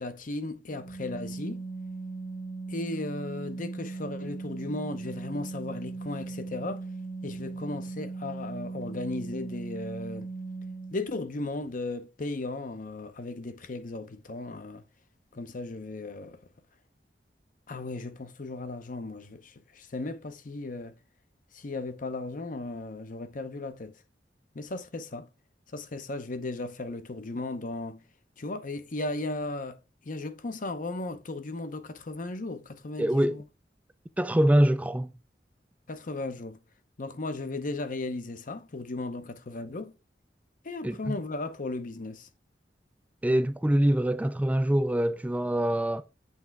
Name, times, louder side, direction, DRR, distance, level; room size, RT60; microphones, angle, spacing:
voice 1, 0.0-1.6 2.7-6.8 7.2-10.3 10.9-14.8 15.3-16.4 17.7-20.9 21.5-24.0 24.5-25.3 25.7-28.0 28.4-29.8 30.1-33.4 35.9-36.6 37.0-39.9 40.6-42.3, left 2 dB, 50° left, 0.7 m, -36 dB
Organ, 0.7-11.3, right 3 dB, 65° left, 1.5 m, -38 dB
voice 2, 33.0-33.4 34.2-35.1 40.8-41.2 43.2-46.0, right 1 dB, 10° right, 0.3 m, -24 dB
8.3 x 3.3 x 4.6 m
head